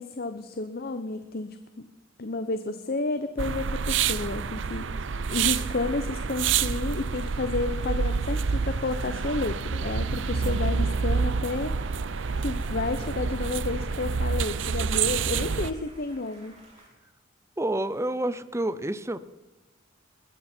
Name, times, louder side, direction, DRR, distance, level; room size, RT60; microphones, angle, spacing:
voice 1, 0.0-1.6 2.2-4.9 5.3-11.7 12.4-16.6, left 3 dB, 50° left, 9 dB, 0.8 m, -31 dB
sound 1, 3.4-15.7, right 5 dB, 65° right, 0.6 m, -28 dB
sound 2, 7.0-16.9, right 2 dB, 35° right, 5.7 m, -53 dB
voice 2, 17.6-19.2, right 1 dB, 15° right, 15 dB, 0.6 m, -28 dB
21.0 x 14.5 x 4.4 m, 1.1 s
head